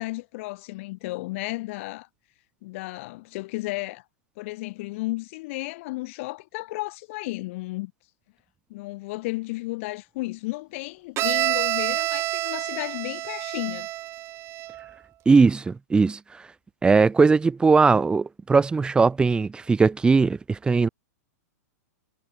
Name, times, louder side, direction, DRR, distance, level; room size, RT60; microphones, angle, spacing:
voice 1, 0.0-2.1 2.6-4.0 4.4-7.9 8.7-13.9, left 21 dB, 50° left, 4.1 m, -33 dB
Bowed string instrument, 11.2-14.9, right 15 dB, 30° right, 2.0 m, -28 dB
voice 2, 15.3-16.5 16.8-20.9, right 4 dB, 10° right, 1.0 m, -19 dB
hypercardioid pair, 125°, 9 cm